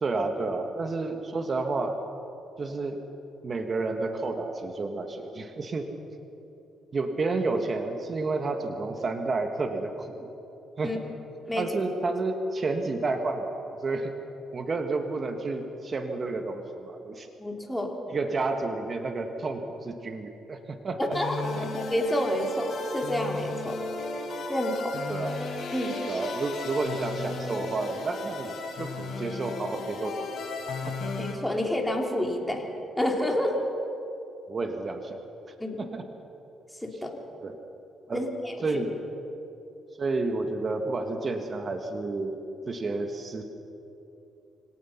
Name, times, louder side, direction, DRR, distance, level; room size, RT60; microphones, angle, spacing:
voice 1, 0.0-2.0 2.6-3.0 3.4-5.9 6.9-10.3 10.8-11.0 11.6-14.1 14.5-17.3 18.1-21.2 21.5-21.8 25.1-25.4 26.1-28.5 28.8-30.3 30.6-31.1 34.5-35.2 35.8-36.0 37.4-37.6 38.1-38.3 38.6-38.9 40.0-42.4 42.7-43.4, right 3 dB, 40° right, 5 dB, 1.6 m, -30 dB
voice 2, 17.4-18.0 21.1-21.4 21.9-23.8 24.5-25.0 25.7-26.0 31.2-32.6 33.0-33.6 35.6-35.8 36.8-37.2 38.1-38.5, left 1 dB, 5° left, 1 dB, 3.0 m, -29 dB
sound 1, 21.1-31.3, left 3 dB, 60° left, 5.1 m, -35 dB
24.5 x 18.0 x 5.9 m, 3.0 s
cardioid pair, 90°, 0 cm